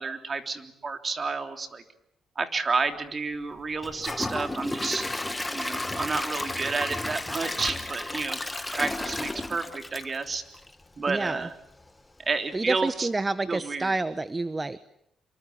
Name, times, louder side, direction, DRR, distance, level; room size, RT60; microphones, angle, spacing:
voice 1, 0.0-1.8 2.3-5.0 5.5-8.4 8.7-10.4 11.0-11.5 12.2-13.1 13.5-13.9, right 4 dB, 35° right, 7 dB, 3.4 m, -30 dB
Gurgling / Toilet flush / Trickle dribble, 3.8-10.8 11.3-11.4 11.8-11.9, left 2 dB, 15° left, 1.8 m, -33 dB
voice 2, 11.1-11.5 12.5-14.9, right 2 dB, 20° right, 14 dB, 1.0 m, -29 dB
27.0 x 24.5 x 8.5 m, 0.77 s
cardioid pair, 90°, 0 cm